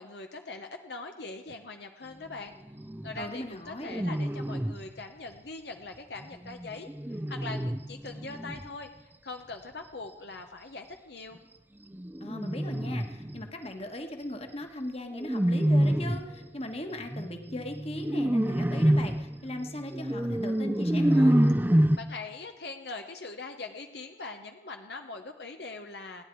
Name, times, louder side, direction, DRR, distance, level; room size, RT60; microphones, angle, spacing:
voice 1, 0.0-2.6 3.0-6.9 7.3-11.4 22.0-26.3, left 3 dB, 65° left, 5 dB, 1.1 m, -42 dB
sound 1, 2.7-3.3 3.8-4.8 6.2-8.7 11.9-13.5 15.1-16.4 17.1-22.0, right 1 dB, 10° right, 0.6 m, -27 dB
voice 2, 3.2-3.9 12.2-21.5, left 1 dB, 35° left, 5 dB, 1.6 m, -39 dB
29.5 x 10.5 x 4.7 m, 1.0 s
head